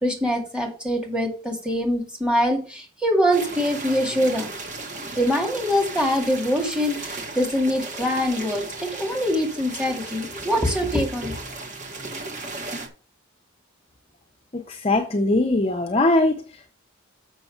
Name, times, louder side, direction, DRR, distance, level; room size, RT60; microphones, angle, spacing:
voice 1, 0.0-4.5 5.2-11.4, equal, 5° right, 2.0 m, -24 dB
sound 1, 3.3-12.9, right 3 dB, 35° right, 1.7 m, -35 dB
voice 2, 14.5-16.7, left 2 dB, 25° left, 0.7 m, -21 dB
6.8 x 6.2 x 5.8 m
head